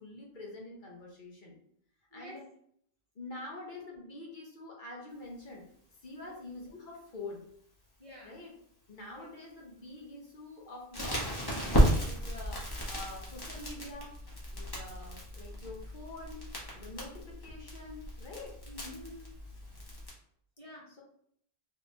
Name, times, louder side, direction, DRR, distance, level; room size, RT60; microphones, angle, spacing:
voice 1, 0.0-1.6 2.1-2.4 3.1-5.7 6.0-7.5 8.2-8.5 8.9-14.1 14.5-16.4 16.7-18.6, left 2 dB, 55° left, -2 dB, 0.9 m, -46 dB
voice 2, 2.1-2.4 3.4-3.5 6.2-6.5 8.0-8.3 9.1-9.3 18.7-19.4 20.6-20.9, left 1 dB, 35° right, -4 dB, 0.9 m, -49 dB
Crackle, 10.9-20.1, equal, 25° left, 0.9 m, -33 dB
3.6 x 2.9 x 2.6 m, 0.66 s
omnidirectional pair, 1.0 m